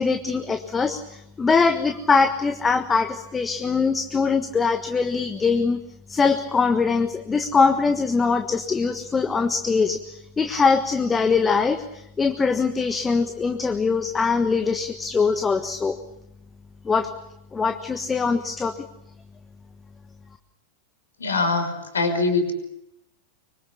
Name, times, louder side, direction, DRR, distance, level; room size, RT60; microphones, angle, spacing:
voice 1, 0.0-5.8 6.1-16.0 16.8-17.1 17.5-18.8, left 4 dB, 15° left, 8 dB, 1.4 m, -22 dB
voice 2, 21.2-22.5, left 3 dB, 70° left, 7 dB, 5.6 m, -23 dB
25.0 x 25.0 x 7.1 m, 0.80 s
figure-of-eight pair, 90°, 0 cm